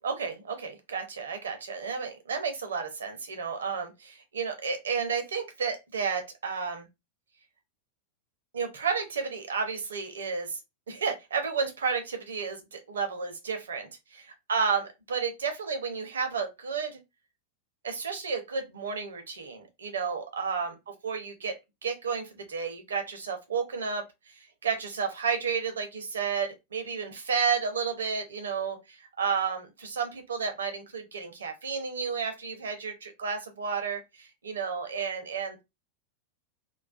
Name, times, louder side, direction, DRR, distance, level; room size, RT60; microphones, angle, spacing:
voice 1, 0.0-6.9 8.5-10.6 10.9-17.0 17.8-20.8 21.0-35.6, right 5 dB, 70° right, 0.6 m, -32 dB
2.3 x 2.3 x 2.3 m
figure-of-eight pair, 90°, 0 cm